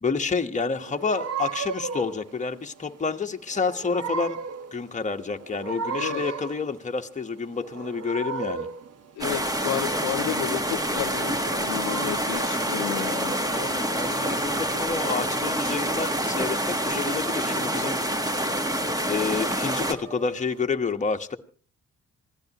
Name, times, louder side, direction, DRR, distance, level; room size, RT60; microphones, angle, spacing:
voice 1, 0.0-4.4 4.7-8.7 13.5-18.2 19.1-21.4, left 4 dB, 25° left, 1.3 m, -29 dB
sound 1, 0.7-20.6, right 6 dB, 55° right, 1.3 m, -38 dB
voice 2, 9.2-13.3, left 15 dB, 85° left, 0.7 m, -32 dB
sound 2, 9.2-19.9, right 1 dB, 10° right, 1.5 m, -27 dB
26.5 x 16.0 x 3.0 m
cardioid pair, 90°, 30 cm